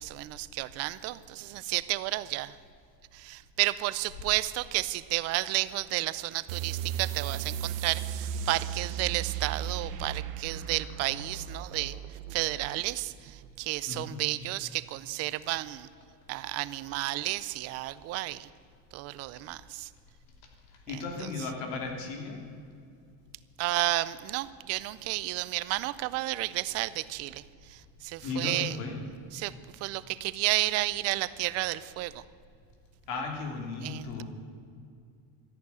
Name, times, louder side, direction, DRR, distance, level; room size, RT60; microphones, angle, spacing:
voice 1, 0.0-2.5 3.1-11.9 12.3-13.3 13.6-15.9 16.3-18.5 18.9-19.9 21.2-21.3 23.6-27.4 28.0-28.7 29.3-29.5 29.8-32.2 33.8-34.2, right 18 dB, 40° right, 17 dB, 0.4 m, -32 dB
sound 1, 6.5-13.6, right 9 dB, 75° right, 1.0 m, -36 dB
voice 2, 13.9-14.2 17.2-17.3 20.7-22.4 28.2-29.0 33.1-34.2, left 4 dB, 65° left, 3 dB, 2.9 m, -35 dB
13.5 x 11.0 x 9.5 m, 2.4 s
cardioid pair, 170°, 42 cm